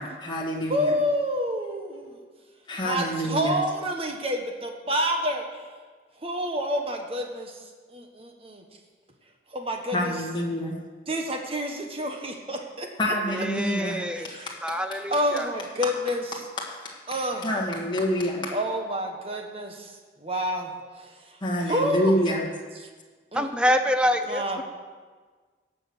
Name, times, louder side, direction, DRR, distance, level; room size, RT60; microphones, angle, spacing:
voice 1, 0.0-0.9 2.0-2.2 2.7-3.6 9.9-10.8 13.0-14.8 16.6-17.0 17.4-18.6 21.4-22.5, equal, 25° left, -2 dB, 1.9 m, -27 dB
voice 2, 0.7-2.2 2.8-5.7 6.2-8.6 9.5-10.2 11.1-13.1 14.2-14.5 15.1-16.4 17.1-17.5 18.5-19.9 20.2-20.7 21.0-21.4 21.6-22.1 23.3-23.5 24.3-24.6, equal, 30° right, 3 dB, 1.4 m, -29 dB
voice 3, 13.3-14.3 14.6-15.5 23.3-24.6, equal, 5° right, 7 dB, 0.6 m, -26 dB
17.0 x 6.4 x 6.3 m, 1.5 s
head